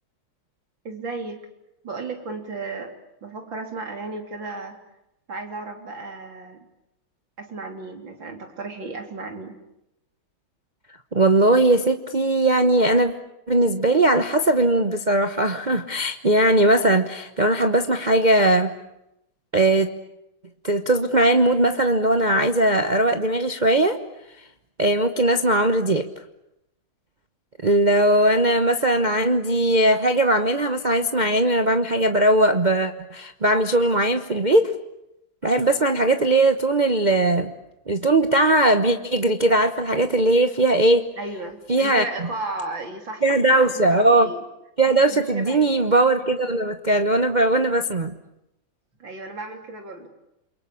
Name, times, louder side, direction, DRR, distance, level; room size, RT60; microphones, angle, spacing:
voice 1, 0.8-1.4 1.8-2.9 3.2-4.8 5.3-6.7 7.4-9.5 41.2-44.4 45.1-45.7 49.0-50.1, right 3 dB, 65° right, 4 dB, 4.0 m, -34 dB
voice 2, 11.1-13.1 13.5-18.7 19.5-19.9 20.6-24.0 24.8-26.1 27.6-34.7 35.4-37.5 37.9-41.1 41.7-42.0 43.2-44.3 44.8-48.1, right 1 dB, 30° right, 7 dB, 0.9 m, -19 dB
28.5 x 23.5 x 8.5 m, 0.85 s
omnidirectional pair, 2.2 m